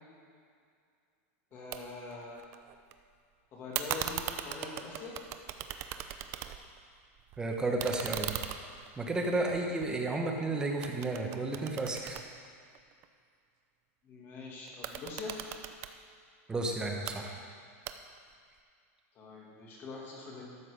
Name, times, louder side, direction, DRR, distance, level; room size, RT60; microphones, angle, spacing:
voice 1, 1.5-2.5 3.5-5.2 14.0-15.4 19.1-20.4, left 3 dB, 30° left, -3 dB, 2.2 m, -43 dB
sound 1, 1.7-1.8 2.1-2.9 3.7-6.8 7.2-10.4 10.8-13.1 14.7-15.9 16.8-17.2 17.9-18.3, right 11 dB, 35° right, 0.5 m, -39 dB
voice 2, 7.4-8.3 9.0-12.2 16.5-17.4, right 2 dB, 10° right, 1 dB, 1.0 m, -32 dB
12.5 x 7.2 x 5.1 m, 2.2 s
supercardioid pair, 160°, 8 cm